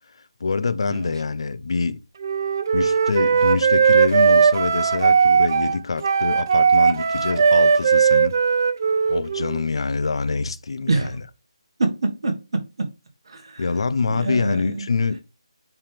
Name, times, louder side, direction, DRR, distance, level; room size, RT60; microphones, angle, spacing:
voice 1, 0.4-2.0 2.7-8.3 9.1-11.1 13.6-15.2, left 4 dB, 60° left, 0.5 m, -25 dB
Wind instrument woodwind instrument, 2.2-9.6, right 6 dB, 35° right, 0.4 m, -18 dB
voice 2, 11.8-12.9 13.3-13.6 14.1-14.9, right 3 dB, 55° right, 1.6 m, -26 dB
8.7 x 3.5 x 3.4 m
figure-of-eight pair, 170°, 3 cm